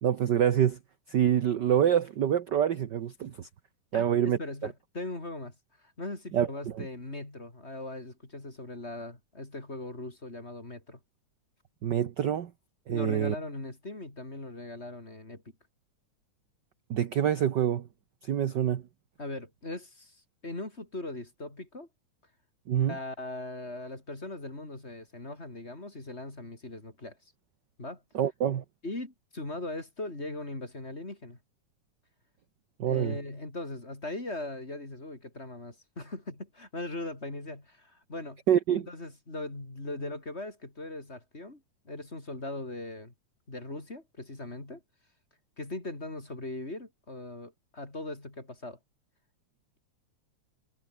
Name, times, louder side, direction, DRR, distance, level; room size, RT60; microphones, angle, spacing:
voice 1, 0.0-0.8 1.1-3.5 3.9-4.4 6.3-6.5 11.8-12.5 12.9-13.3 16.9-17.9 18.2-18.8 22.7-22.9 28.1-28.6 32.8-33.2 38.5-38.9, right 9 dB, 60° right, 1.1 m, -26 dB
voice 2, 3.9-11.0 12.9-15.4 19.2-21.9 22.8-27.2 27.8-28.0 28.8-31.4 32.8-38.4 38.7-43.1 43.5-44.8 45.6-48.8, left 2 dB, 20° left, 4.4 m, -39 dB
omnidirectional pair, 3.3 m